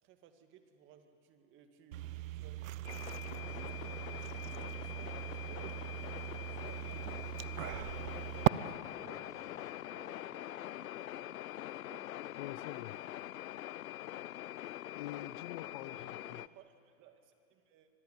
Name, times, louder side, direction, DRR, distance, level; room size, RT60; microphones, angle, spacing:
voice 1, 0.0-5.8 6.4-7.1 7.6-9.3 9.9-12.1 15.8-17.9, right 8 dB, 30° right, 2.1 m, -60 dB
sound 1, 1.9-8.5, right 15 dB, 70° right, 0.8 m, -38 dB
sound 2, 2.8-16.5, left 14 dB, 80° left, 0.7 m, -44 dB
sound 3, 2.8-9.8, left 3 dB, 10° left, 2.2 m, -58 dB
voice 2, 12.4-13.0 14.9-16.4, left 15 dB, 35° left, 0.5 m, -45 dB
25.0 x 21.0 x 9.1 m
hypercardioid pair, 145°, 41 cm